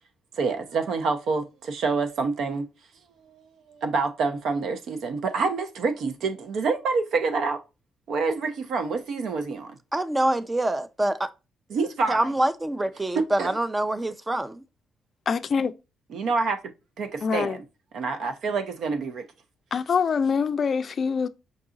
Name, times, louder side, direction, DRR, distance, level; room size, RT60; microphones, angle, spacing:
voice 1, 0.3-2.7 3.7-7.6 8.1-9.7 11.7-12.2 13.1-13.5 16.1-16.6 17.0-17.6 17.9-19.3, right 4 dB, 70° right, 0.8 m, -27 dB
voice 2, 9.9-11.3 12.1-14.6, right 1 dB, 15° right, 0.5 m, -25 dB
voice 3, 15.3-15.7 17.2-17.6 19.7-21.3, left 6 dB, 50° left, 0.4 m, -24 dB
5.3 x 2.4 x 3.9 m
cardioid pair, 90°, 0 cm